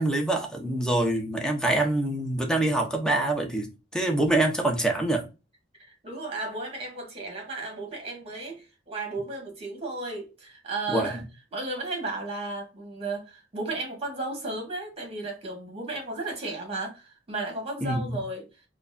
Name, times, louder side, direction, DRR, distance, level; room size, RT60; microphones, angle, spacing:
voice 1, 0.0-5.2 10.9-11.1 17.8-18.2, right 2 dB, 5° left, 0.8 m, -25 dB
voice 2, 5.8-11.2 11.5-18.5, right 2 dB, 35° right, 1.7 m, -34 dB
4.5 x 2.4 x 2.6 m
head